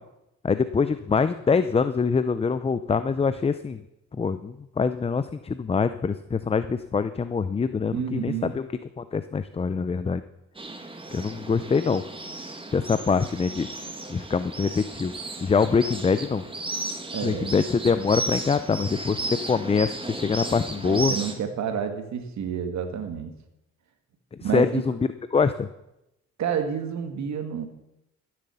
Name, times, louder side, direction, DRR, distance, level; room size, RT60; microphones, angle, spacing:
voice 1, 0.4-3.8 4.1-8.6 9.0-10.2 11.1-12.0 12.7-13.7 14.1-15.1 15.4-16.4 17.2-21.1 24.4-25.0 25.3-25.7, left 5 dB, 20° left, 12 dB, 0.5 m, -24 dB
voice 2, 7.9-8.5 17.1-17.5 20.8-23.3 24.4-24.8 26.4-27.7, right 7 dB, 65° right, 7 dB, 1.9 m, -29 dB
sound 1, 10.6-21.3, right 2 dB, 15° right, 1.7 m, -35 dB
13.5 x 7.7 x 7.0 m, 0.88 s
cardioid pair, 90°, 30 cm